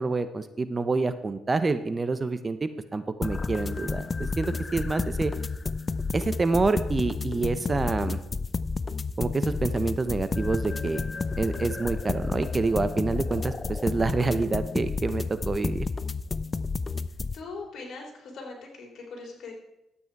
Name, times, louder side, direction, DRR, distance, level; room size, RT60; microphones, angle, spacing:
voice 1, 0.0-5.3 6.1-8.2 9.2-11.0 11.4-15.9, right 3 dB, 30° right, 12 dB, 0.7 m, -27 dB
sound 1, 3.2-17.4, left 4 dB, 30° left, 0.5 m, -31 dB
voice 2, 17.3-19.5, left 3 dB, 65° left, 0 dB, 3.6 m, -40 dB
12.0 x 8.5 x 4.7 m, 0.86 s
cardioid pair, 90°, 0 cm